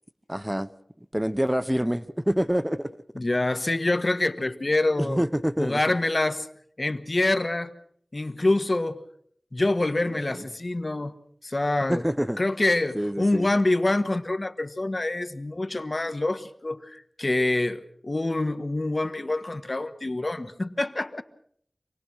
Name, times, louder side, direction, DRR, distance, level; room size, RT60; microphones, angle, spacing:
voice 1, 0.3-0.7 1.1-2.9 5.0-5.8 10.3-10.4 11.9-12.4 12.9-13.5, equal, 10° right, 0.9 m, -26 dB
voice 2, 3.1-5.2 5.6-6.5 6.8-7.7 8.1-9.0 9.5-11.1 11.4-12.0 12.4-21.2, left 2 dB, 50° left, 1.4 m, -26 dB
26.5 x 19.5 x 6.3 m
wide cardioid pair, 45°, 0 cm